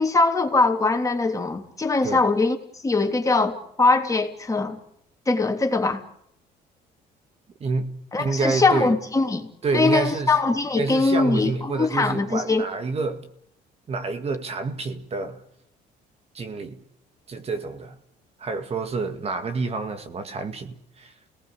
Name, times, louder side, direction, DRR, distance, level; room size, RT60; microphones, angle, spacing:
voice 1, 0.0-2.6 2.8-4.8 5.3-6.0 8.1-12.6, left 3 dB, 20° left, 3.2 m, -22 dB
voice 2, 7.6-9.0 9.6-10.3 10.8-13.3 13.9-15.4 16.3-16.8 17.3-18.0 18.4-21.1, right 4 dB, 35° right, 2.1 m, -28 dB
29.5 x 18.5 x 8.3 m
cardioid pair, 110°, 17 cm